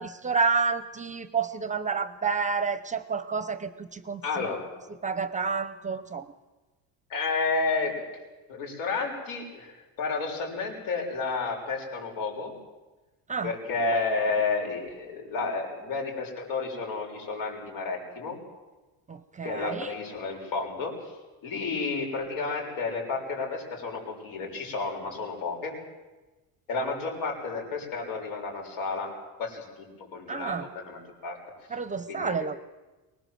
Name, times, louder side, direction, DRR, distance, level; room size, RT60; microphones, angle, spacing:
voice 1, 0.0-4.5 5.0-6.3 13.3-13.5 19.1-19.9 30.3-30.7 31.7-32.6, right 5 dB, 15° right, 13 dB, 0.6 m, -29 dB
voice 2, 4.2-4.6 7.1-8.0 8.5-12.5 13.4-18.4 19.4-20.9 21.4-25.7 26.7-29.1 29.4-30.5 30.9-31.4 32.1-32.3, left 4 dB, 85° left, 1 dB, 7.0 m, -31 dB
24.0 x 19.5 x 7.7 m, 1.2 s
cardioid pair, 165°, 44 cm